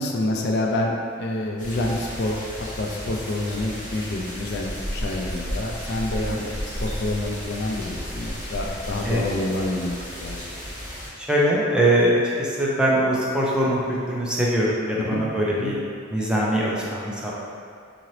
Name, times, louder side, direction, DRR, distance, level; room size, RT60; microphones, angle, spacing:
voice 1, 0.0-10.5 15.1-15.2 15.6-15.7, left 1 dB, 60° left, 0 dB, 0.4 m, -28 dB
sound 1, 1.6-11.1, equal, 45° left, 1.4 m, -33 dB
voice 2, 11.2-15.8 16.1-17.3, right 1 dB, 5° right, -6 dB, 0.5 m, -22 dB
3.8 x 2.8 x 3.1 m, 2.2 s
head